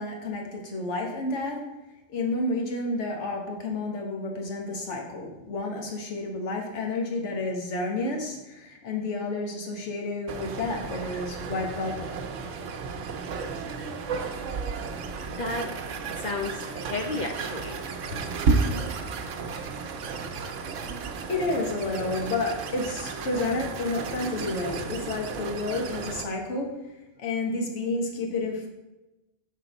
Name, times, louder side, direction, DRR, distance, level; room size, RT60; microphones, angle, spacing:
voice 1, 0.0-1.6 2.1-12.2 20.8-21.0 21.3-26.7 27.2-28.7, left 2 dB, 75° left, 0 dB, 1.3 m, -30 dB
sound 1, 10.3-26.2, right 4 dB, 90° right, 1.0 m, -32 dB
voice 2, 15.3-15.7 16.1-17.8 18.1-18.2, left 3 dB, 60° left, 2 dB, 0.5 m, -33 dB
5.8 x 4.7 x 4.0 m, 1.0 s
omnidirectional pair, 1.2 m